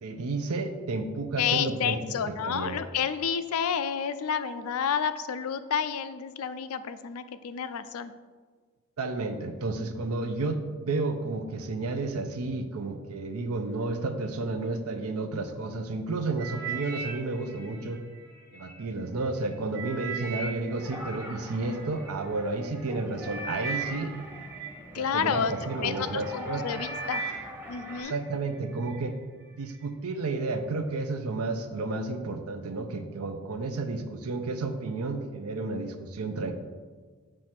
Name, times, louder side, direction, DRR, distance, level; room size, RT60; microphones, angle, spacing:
voice 1, 0.0-2.8 9.0-18.0 18.5-24.1 24.9-26.8 28.0-29.1 29.5-36.5, right 3 dB, 85° right, 7 dB, 0.6 m, -32 dB
voice 2, 1.4-8.1 24.9-25.5 25.8-27.2 27.7-28.1, left 7 dB, 85° left, 12 dB, 0.4 m, -30 dB
sound 1, 16.4-18.7 19.2-22.1 22.8-22.9 23.2-25.6 26.1-26.4 26.7-28.2 28.6-29.0 29.6-29.7, right 4 dB, 45° right, 1.2 m, -38 dB
sound 2, 20.7-28.0, equal, 10° right, 0.8 m, -43 dB
7.6 x 3.2 x 5.8 m, 1.4 s
head